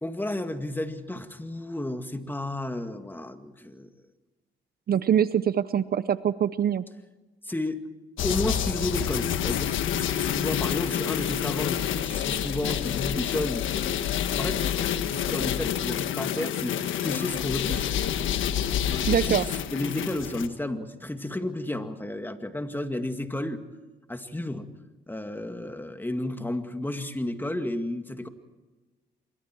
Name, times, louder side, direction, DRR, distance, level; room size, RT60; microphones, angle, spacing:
voice 1, 0.0-3.9 7.4-7.8 8.2-13.7 14.4-17.9 19.1-23.6 24.1-24.7 25.1-28.3, left 1 dB, 10° left, 7 dB, 2.1 m, -32 dB
voice 2, 4.9-6.8 19.1-19.4, right 9 dB, 50° right, 15 dB, 0.7 m, -24 dB
sound 1, 8.2-20.5, left 10 dB, 75° left, 1.4 m, -28 dB
26.0 x 24.0 x 4.6 m, 1.2 s
cardioid pair, 90°, 20 cm